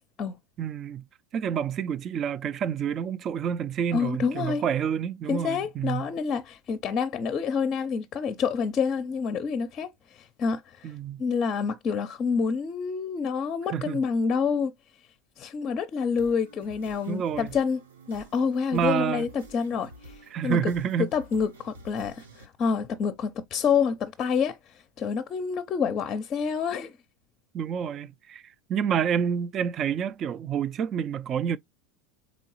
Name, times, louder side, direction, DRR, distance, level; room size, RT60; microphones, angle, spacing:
voice 1, 0.6-1.1 1.3-6.1 10.8-11.2 13.7-14.0 17.1-17.5 18.7-19.3 20.3-21.1 27.5-28.4 28.7-31.6, right 8 dB, 40° right, 0.4 m, -28 dB
voice 2, 3.9-4.6 5.3-10.9 11.2-14.7 15.4-17.8 18.1-20.2 20.4-20.7 21.1-26.9, left 6 dB, 35° left, 0.5 m, -28 dB
sound 1, 16.1-22.5, right 1 dB, 85° right, 0.9 m, -50 dB
4.0 x 3.8 x 2.9 m
hypercardioid pair, 90°, 0 cm